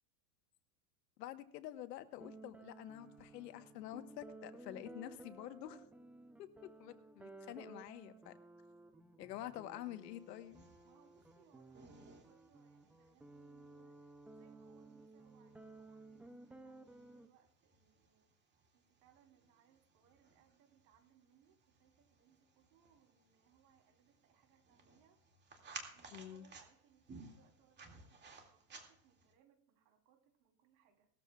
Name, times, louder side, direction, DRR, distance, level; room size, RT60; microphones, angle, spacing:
voice 1, 1.2-5.8 6.4-8.4 9.2-10.6 26.1-26.4, left 13 dB, 85° left, 10 dB, 1.3 m, -48 dB
sound 1, 2.2-17.3, right 2 dB, 5° right, 0.5 m, -56 dB
sound 2, 9.9-29.3, right 4 dB, 20° right, 2.4 m, -59 dB
voice 2, 10.8-25.2 25.9-31.1, right 8 dB, 55° right, 3 dB, 3.6 m, -71 dB
19.0 x 13.5 x 2.4 m, 0.65 s
supercardioid pair, 140°, 48 cm